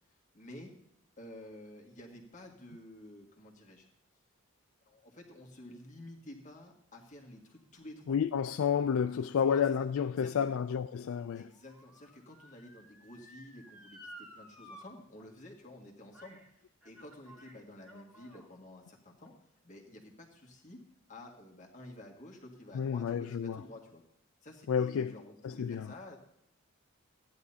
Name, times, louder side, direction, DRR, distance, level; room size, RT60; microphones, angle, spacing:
voice 1, 0.1-0.7 1.2-3.9 4.8-8.2 9.4-9.9 10.2-10.6 11.3-20.8 21.1-24.0 24.4-26.2, left 1 dB, 35° left, 1.9 m, -51 dB
voice 2, 8.1-11.5 22.7-23.6 24.7-25.1 25.4-25.9, left 7 dB, 70° left, 0.3 m, -30 dB
Motor vehicle (road) / Siren, 9.7-14.8 15.2-15.3 16.1-16.5 16.8-18.5 19.2-19.3, equal, 5° right, 1.9 m, -55 dB
16.0 x 10.5 x 2.8 m
head